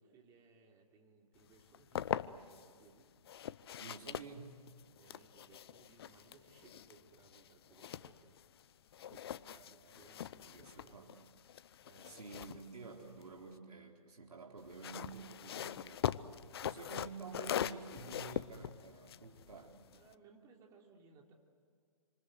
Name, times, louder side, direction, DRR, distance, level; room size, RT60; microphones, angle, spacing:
voice 1, 0.0-3.1 5.0-8.8 9.6-11.2 11.8-12.3 12.7-12.8 16.7-17.2 19.9-21.3, right 4 dB, 15° right, 1 dB, 3.1 m, -64 dB
sound 1, 1.5-2.7 3.2-8.7 8.9-13.6 14.6-20.1, left 10 dB, 40° left, 0.7 m, -42 dB
voice 2, 3.8-4.6 9.1-11.1 12.0-19.8, right 4 dB, 75° right, 0 dB, 4.4 m, -51 dB
27.5 x 26.5 x 7.9 m, 2.1 s
hypercardioid pair, 150°, 20 cm